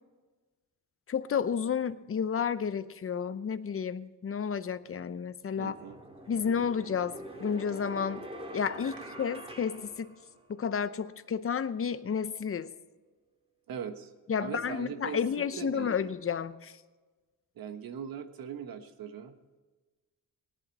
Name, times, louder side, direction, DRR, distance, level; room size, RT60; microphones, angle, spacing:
voice 1, 1.1-5.7 6.3-8.2 8.5-10.1 10.5-12.7 14.3-16.7, left 7 dB, 40° left, 13 dB, 0.7 m, -31 dB
sound 1, 4.8-4.9 5.5-10.7, right 1 dB, 15° right, 1.9 m, -45 dB
voice 2, 5.6-6.0 13.7-14.1 14.4-15.2 15.6-15.9 17.6-19.3, right 7 dB, 80° right, 8 dB, 1.3 m, -40 dB
18.5 x 11.0 x 4.2 m, 1.3 s
cardioid pair, 105°, 35 cm